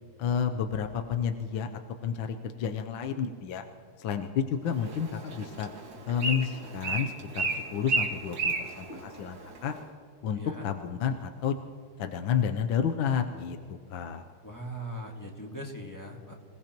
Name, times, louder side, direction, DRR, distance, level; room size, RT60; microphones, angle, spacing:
voice 1, 0.2-3.6 4.0-5.7 6.1-9.8 10.2-11.6 12.0-14.2, left 7 dB, 70° left, 6 dB, 1.4 m, -31 dB
Bird, 4.7-9.8, right 3 dB, 55° right, 2.4 m, -33 dB
voice 2, 14.4-16.3, right 1 dB, 10° left, 0 dB, 1.5 m, -40 dB
27.0 x 17.5 x 3.0 m, 2.3 s
omnidirectional pair, 2.4 m